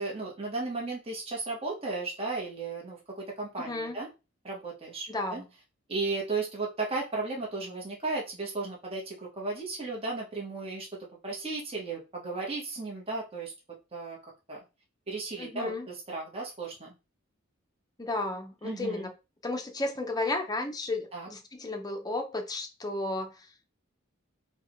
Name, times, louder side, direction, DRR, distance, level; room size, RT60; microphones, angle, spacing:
voice 1, 0.0-4.1 4.4-5.4 5.9-13.5 13.9-14.2 14.5-14.6 15.1-16.9 18.6-19.1 21.1-21.3, right 3 dB, 30° right, -2 dB, 1.1 m, -35 dB
voice 2, 3.6-4.0 5.1-5.4 15.4-15.9 18.0-19.1 19.4-23.5, left 2 dB, 20° left, 4 dB, 0.6 m, -33 dB
4.6 x 2.3 x 3.0 m, 0.28 s
head